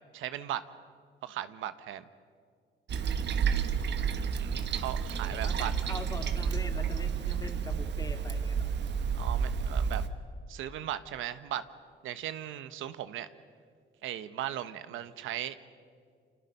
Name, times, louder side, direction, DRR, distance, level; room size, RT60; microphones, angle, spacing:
voice 1, 0.1-0.6 1.2-2.0 4.4-5.7 9.1-10.0 10.5-11.7 12.0-13.3 14.0-15.5, right 12 dB, 85° right, 12 dB, 1.0 m, -37 dB
Toilet flush, 2.9-10.1, right 6 dB, 65° right, 1.3 m, -30 dB
voice 2, 3.8-4.1 5.2-8.7 14.9-15.0, left 2 dB, 20° left, 6 dB, 2.2 m, -43 dB
29.0 x 25.0 x 5.4 m, 2.1 s
cardioid pair, 90°, 20 cm